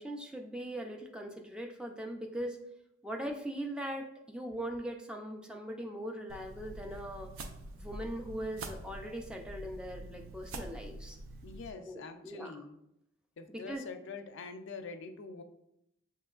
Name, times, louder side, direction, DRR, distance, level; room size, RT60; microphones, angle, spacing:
voice 1, 0.0-2.6 3.0-7.3 7.7-11.2 11.8-12.5 13.5-13.8, right 1 dB, 5° right, 2 dB, 0.4 m, -40 dB
sound 1, 6.3-11.7, right 2 dB, 80° right, 0.5 m, -46 dB
voice 2, 11.4-12.8 13.4-15.4, left 4 dB, 60° left, 7 dB, 0.4 m, -45 dB
6.6 x 2.9 x 2.4 m, 0.81 s
head